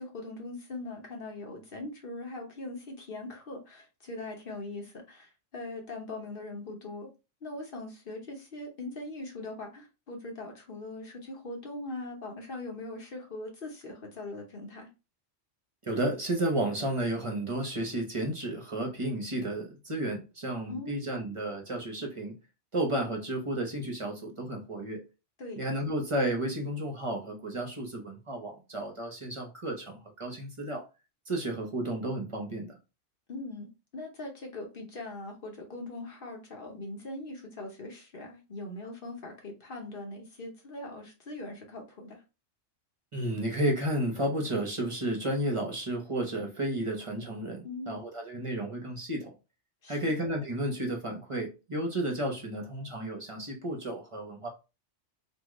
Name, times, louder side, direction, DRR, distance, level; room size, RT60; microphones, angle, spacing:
voice 1, 0.0-7.1 7.4-14.9 20.7-21.0 25.4-25.6 33.3-42.2 47.6-48.0 49.8-50.1, left 2 dB, 50° left, 1.0 m, -41 dB
voice 2, 15.8-22.3 22.7-25.0 25.6-30.8 31.3-32.8 43.1-49.3 49.9-54.5, right 1 dB, 35° right, 0.6 m, -32 dB
3.6 x 2.2 x 3.0 m
omnidirectional pair, 1.2 m